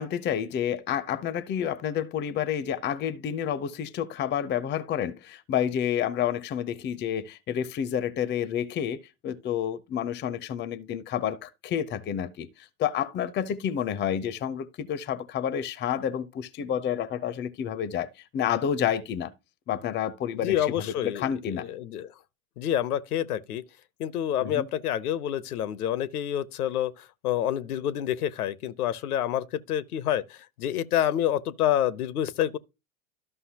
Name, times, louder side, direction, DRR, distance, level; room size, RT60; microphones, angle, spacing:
voice 1, 0.0-18.1 18.3-19.3 19.7-21.7 24.4-24.7, left 9 dB, 25° left, 0.6 m, -29 dB
voice 2, 20.3-22.1 22.6-23.6 24.0-32.6, left 11 dB, 75° left, 0.7 m, -28 dB
13.0 x 5.4 x 2.8 m
hypercardioid pair, 85°, 45 cm